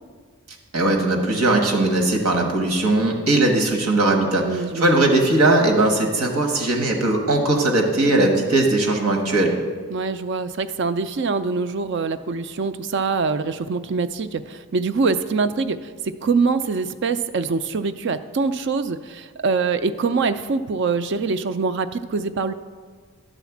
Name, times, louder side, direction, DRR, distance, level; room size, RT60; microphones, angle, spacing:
voice 1, 0.7-9.6, right 2 dB, 85° right, 2 dB, 1.3 m, -19 dB
voice 2, 4.4-5.0 9.9-22.5, right 4 dB, 50° right, 12 dB, 0.4 m, -24 dB
11.0 x 4.1 x 7.1 m, 1.5 s
head